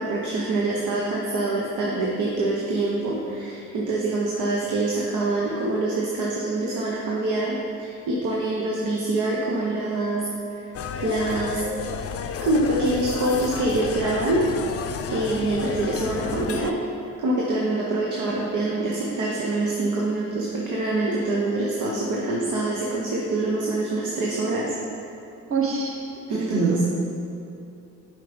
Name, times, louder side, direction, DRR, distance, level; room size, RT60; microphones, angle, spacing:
voice 1, 0.0-10.3 11.0-11.6 12.4-14.4 15.1-16.7 17.2-24.7 26.3-26.8, right 2 dB, 80° right, -3 dB, 1.1 m, -25 dB
sound 1, 10.7-16.7, left 7 dB, 50° left, 0.5 m, -31 dB
voice 2, 25.5-26.0 26.5-26.8, right 4 dB, 45° right, -2 dB, 1.6 m, -23 dB
7.6 x 4.8 x 5.2 m, 2.6 s
cardioid pair, 90°, 30 cm